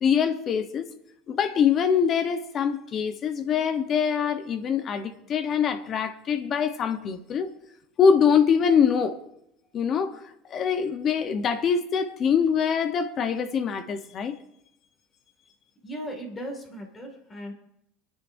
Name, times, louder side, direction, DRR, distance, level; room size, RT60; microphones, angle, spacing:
voice 1, 0.0-0.9 1.3-7.5 8.0-9.2 9.7-10.2 10.5-14.4, left 7 dB, 35° left, 0.9 m, -24 dB
voice 2, 15.8-17.5, equal, 20° left, 2.2 m, -37 dB
28.0 x 9.5 x 2.7 m
supercardioid pair, 125°, 0 cm